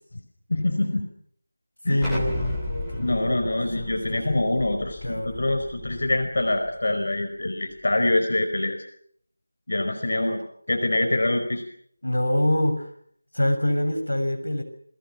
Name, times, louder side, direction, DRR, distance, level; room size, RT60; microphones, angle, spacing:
voice 1, 0.5-1.0 1.8-2.1 3.0-8.8 9.7-10.4 10.7-11.6, left 2 dB, 55° left, 5 dB, 4.9 m, -25 dB
voice 2, 1.9-4.3 5.0-5.4 12.0-12.9 13.3-14.6, left 1 dB, 80° left, 7 dB, 6.8 m, -26 dB
Explosion, 2.0-6.7, left 2 dB, ahead, 2.6 m, -35 dB
29.0 x 22.0 x 6.0 m, 0.63 s
figure-of-eight pair, 170°, 0 cm